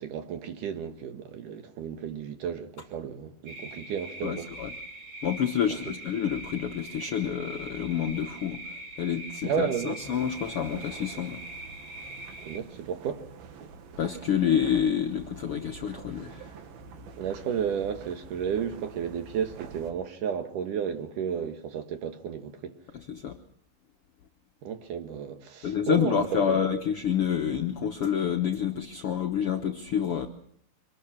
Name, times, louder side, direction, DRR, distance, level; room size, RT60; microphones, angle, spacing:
voice 1, 0.0-4.5 5.7-5.8 9.4-10.0 12.4-13.2 17.2-22.7 24.6-26.6, right 8 dB, 65° right, 2.9 m, -32 dB
sound 1, 3.5-12.6, right 2 dB, 40° right, 2.7 m, -42 dB
voice 2, 4.2-4.7 5.2-8.6 9.0-11.4 14.0-16.5 22.9-23.4 25.6-30.3, left 8 dB, 65° left, 1.4 m, -28 dB
sound 2, 10.0-19.9, right 5 dB, 90° right, 3.4 m, -47 dB
25.5 x 20.0 x 5.9 m
omnidirectional pair, 4.1 m